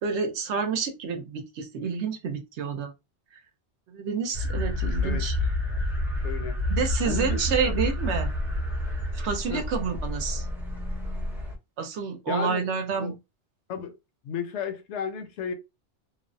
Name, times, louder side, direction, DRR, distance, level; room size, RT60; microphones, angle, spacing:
voice 1, 0.0-2.9 3.9-5.4 6.7-8.3 9.1-10.4 11.8-13.1, right 6 dB, 75° right, 1.0 m, -29 dB
sound 1, 4.3-11.5, left 1 dB, ahead, 0.5 m, -29 dB
voice 2, 6.2-6.6 7.0-7.7 9.5-9.6 12.3-13.1 13.7-13.9 14.2-15.5, left 7 dB, 75° left, 0.9 m, -34 dB
3.1 x 2.0 x 2.6 m
omnidirectional pair, 1.2 m